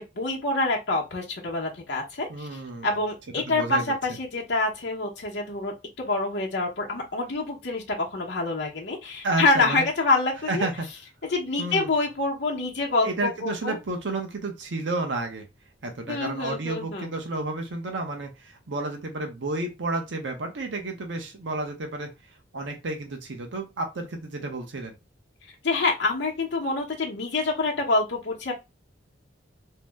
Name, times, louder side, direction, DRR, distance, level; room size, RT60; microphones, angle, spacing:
voice 1, 0.2-10.7 11.3-13.8 16.1-17.1 25.6-28.5, left 3 dB, 60° left, 0.8 m, -26 dB
voice 2, 2.3-2.9 3.4-3.9 9.2-9.8 10.5-10.9 11.6-11.9 13.0-15.5 15.8-22.1 22.5-25.0, right 2 dB, 70° right, 0.7 m, -31 dB
2.7 x 2.0 x 3.3 m
head